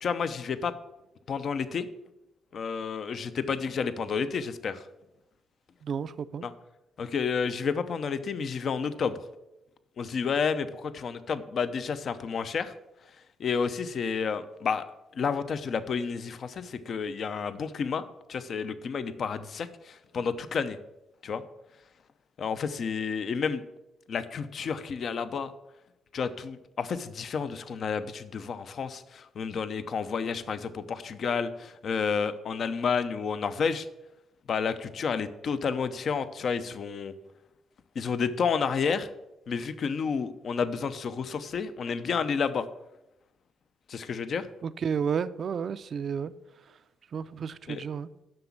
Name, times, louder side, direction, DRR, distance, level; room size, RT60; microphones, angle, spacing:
voice 1, 0.0-0.7 1.3-1.9 2.5-4.8 6.4-6.5 7.0-9.2 10.0-12.7 13.4-14.8 15.1-20.8 21.2-21.4 22.4-23.6 24.1-25.5 26.1-33.9 34.5-37.1 38.0-39.1 39.5-42.7 43.9-44.5 47.7-47.8, left 6 dB, 55° left, 0.6 m, -30 dB
voice 2, 5.8-6.5 44.6-46.3 47.1-48.1, right 6 dB, 55° right, 0.4 m, -31 dB
7.8 x 5.9 x 7.2 m
cardioid pair, 90°, 0 cm